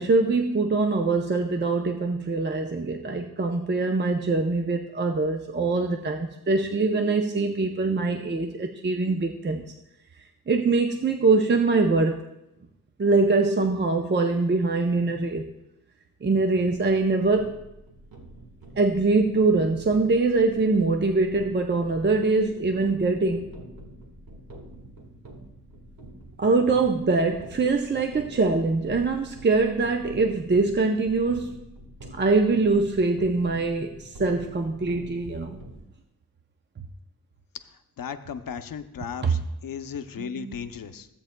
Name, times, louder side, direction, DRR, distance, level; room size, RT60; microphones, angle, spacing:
voice 1, 0.0-9.6 10.5-12.2 13.0-15.5 16.2-17.5 18.8-23.5 26.4-31.6 32.1-35.6 39.2-39.3 40.2-40.5, right 3 dB, 30° right, 4 dB, 0.6 m, -23 dB
sound 1, 16.6-35.8, right 1 dB, 85° right, 1.6 m, -46 dB
voice 2, 38.0-41.1, left 7 dB, 75° left, 9 dB, 0.6 m, -36 dB
16.0 x 8.5 x 2.2 m, 0.85 s
wide cardioid pair, 85°, 34 cm